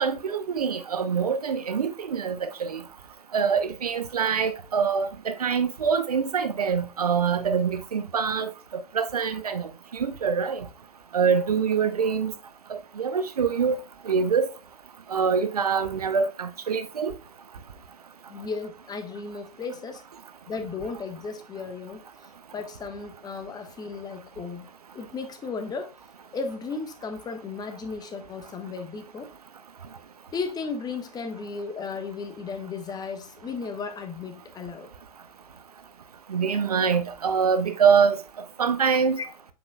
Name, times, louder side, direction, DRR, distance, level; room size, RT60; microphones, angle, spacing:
voice 1, 0.0-2.8 3.3-10.6 11.1-12.3 12.7-13.8 14.0-14.5 15.1-17.1 36.3-38.2 38.6-39.2, right 6 dB, 75° right, 0.9 m, -25 dB
voice 2, 18.3-20.0 20.5-22.0 22.5-24.7 24.9-25.9 26.3-29.3 30.3-34.9 39.2-39.3, left 4 dB, 20° left, 1.4 m, -35 dB
7.9 x 5.2 x 2.3 m
figure-of-eight pair, 90°, 19 cm